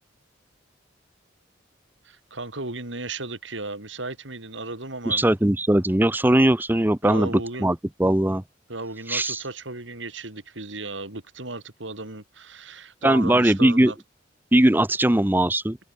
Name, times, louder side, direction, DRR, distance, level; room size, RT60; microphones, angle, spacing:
voice 1, 2.0-5.3 7.0-7.7 8.7-14.0, right 2 dB, 85° right, 4.6 m, -35 dB
voice 2, 5.1-7.3 7.6-8.4 9.1-9.4 13.0-13.9 14.5-15.8, right 1 dB, 10° right, 0.7 m, -20 dB
head